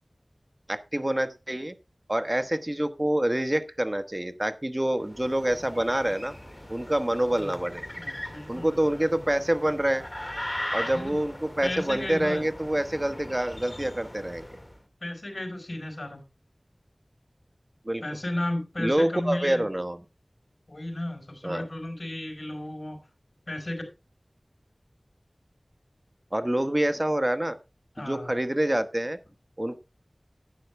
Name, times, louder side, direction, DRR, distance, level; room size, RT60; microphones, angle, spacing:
voice 1, 0.7-1.7 2.1-6.3 6.7-7.8 8.5-10.0 10.7-14.4 17.8-18.0 18.8-20.0 21.4-21.7 26.3-27.6 28.0-29.2 29.6-29.8, right 1 dB, 25° right, 1.2 m, -26 dB
sound 1, 5.0-14.8, left 1 dB, 25° left, 2.3 m, -39 dB
voice 2, 7.9-9.2 10.8-11.2 11.6-12.5 15.0-16.2 18.0-19.7 20.7-23.0 23.5-23.8 28.0-28.3, left 1 dB, 60° left, 4.9 m, -34 dB
11.5 x 9.4 x 3.4 m
wide cardioid pair, 50°, 0 cm